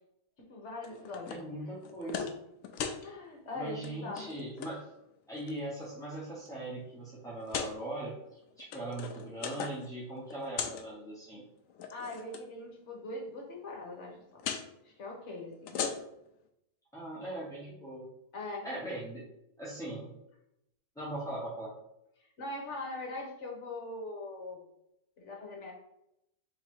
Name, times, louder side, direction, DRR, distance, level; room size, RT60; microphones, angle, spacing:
voice 1, 0.5-1.4 3.0-4.3 11.9-14.4 14.8-15.8 18.3-18.6 22.2-24.6 25.2-25.7, left 2 dB, 50° left, -1 dB, 1.3 m, -41 dB
sound 1, 0.8-1.4 1.8-2.4 2.6-3.0 3.7-3.9 4.2-4.7 5.4-5.9 6.5-6.6 7.4-7.7 8.5-9.9 10.2-10.8 11.7-12.4 14.4-14.7 15.5-16.3, left 7 dB, 75° left, 0.7 m, -38 dB
voice 2, 1.3-2.3 3.5-4.8 5.3-8.1 8.6-11.4 16.9-18.1 18.6-19.2 19.6-20.1 21.0-21.7, right 1 dB, 5° left, -8 dB, 0.7 m, -40 dB
4.0 x 2.9 x 4.5 m, 0.80 s
omnidirectional pair, 1.8 m